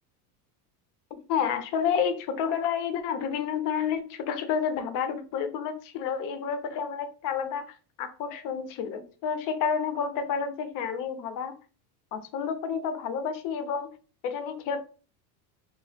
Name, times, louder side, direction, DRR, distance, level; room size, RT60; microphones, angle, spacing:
voice 1, 1.3-11.6 12.1-13.9 14.2-14.8, left 7 dB, 45° left, 0.5 m, -30 dB
2.9 x 2.0 x 3.2 m
cardioid pair, 140°, 47 cm